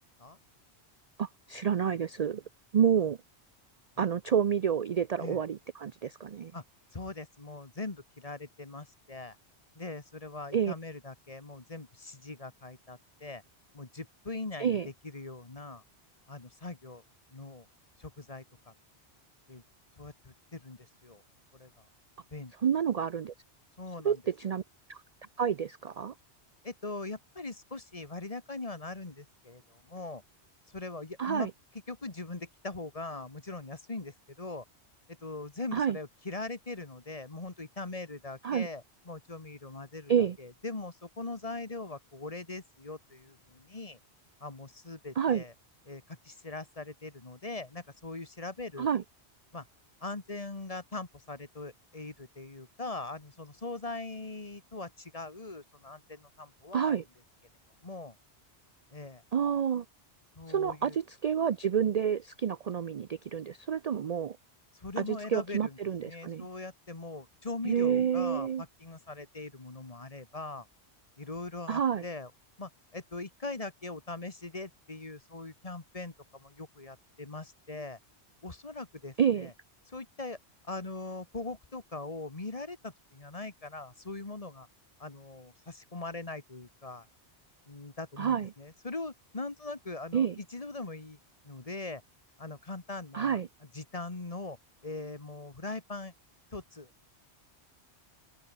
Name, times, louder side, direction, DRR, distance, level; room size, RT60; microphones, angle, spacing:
voice 1, 1.2-2.4 2.7-3.2 4.0-6.5 10.5-10.7 14.6-14.9 22.6-23.3 24.0-24.6 24.9-25.0 25.4-26.1 31.2-31.5 35.7-36.0 38.4-38.7 40.1-40.4 45.2-45.4 48.8-49.0 56.7-57.0 59.3-59.8 60.5-64.4 65.0-66.5 67.6-68.6 71.7-72.0 79.2-79.5 88.2-88.5 90.1-90.4 93.1-93.5, right 8 dB, 50° right, 0.5 m, -29 dB
voice 2, 6.9-9.4 9.8-13.4 13.7-15.8 16.3-17.0 17.3-17.7 18.0-18.7 19.5-19.6 20.0-21.2 21.5-21.8 22.3-22.5 23.8-24.2 26.6-30.2 30.7-31.5 31.9-34.6 35.1-44.0 44.4-45.5 45.9-48.9 49.5-49.7 50.0-57.0 57.8-58.2 58.9-59.2 60.4-61.0 64.7-70.7 71.2-72.3 72.6-78.0 78.4-79.5 79.9-80.4 80.7-84.7 85.0-87.1 87.7-91.2 91.4-92.0 92.4-93.4 93.7-94.6 94.8-96.1 96.5-96.9, left 3 dB, 35° left, 1.8 m, -41 dB
open air
omnidirectional pair, 1.1 m